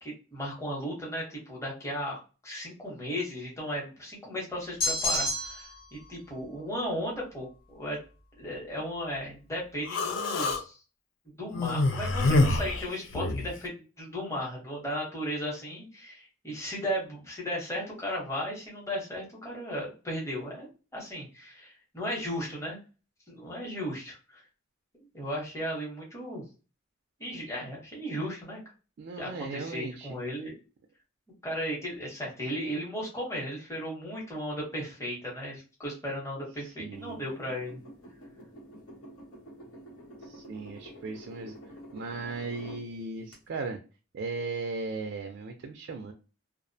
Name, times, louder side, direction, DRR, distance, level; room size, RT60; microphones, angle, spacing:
voice 1, 0.0-2.2 2.4-8.0 8.4-10.8 11.4-22.8 23.3-24.4 25.0-26.4 27.2-28.6 29.2-30.5 31.4-37.8, equal, 15° left, -4 dB, 0.7 m, -35 dB
sound 1, 4.8-5.8, left 1 dB, 45° left, 0.8 m, -29 dB
Human voice, 9.9-10.6 11.5-13.5, left 2 dB, 65° left, 0.4 m, -26 dB
voice 2, 29.0-30.2 36.8-37.2 40.2-41.6 41.9-43.8 44.1-46.1, right 3 dB, 55° right, 3 dB, 0.3 m, -37 dB
sound 2, 36.9-42.8 43.3-43.4, equal, 90° left, 1.0 m, -48 dB
2.4 x 2.0 x 2.6 m, 0.33 s
head